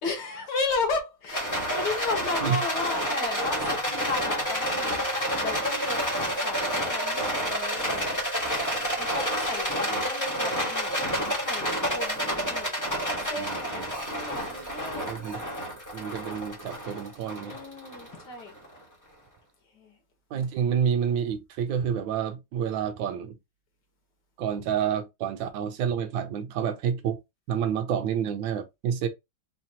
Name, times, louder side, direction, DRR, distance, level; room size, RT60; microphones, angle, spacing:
voice 1, 0.0-8.1 9.0-13.0 13.3-15.2 17.4-18.5 19.7-19.9, left 3 dB, 60° left, 1.7 m, -34 dB
Rattle, 1.3-18.6, equal, 10° left, 1.0 m, -29 dB
voice 2, 13.3-13.9 15.1-15.4 15.9-17.6 20.3-23.4 24.4-27.2 27.5-29.1, right 8 dB, 75° right, 1.3 m, -29 dB
4.2 x 2.8 x 2.7 m
omnidirectional pair, 2.2 m